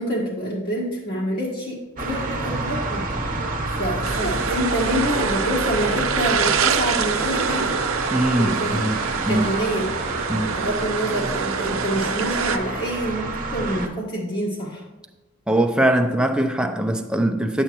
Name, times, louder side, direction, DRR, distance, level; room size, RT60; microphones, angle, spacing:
voice 1, 0.0-1.8 2.1-3.0 3.8-7.7 8.4-8.8 9.3-9.9 10.5-14.8, equal, 50° left, 1.5 m, -26 dB
sound 1, 2.0-13.9, right 2 dB, 40° right, 1.0 m, -29 dB
sound 2, 4.0-12.6, right 6 dB, 75° right, 0.6 m, -26 dB
voice 2, 8.1-9.0 9.3-9.5 10.3-10.6 15.5-17.6, right 1 dB, 5° right, 0.6 m, -21 dB
10.0 x 7.9 x 3.0 m
head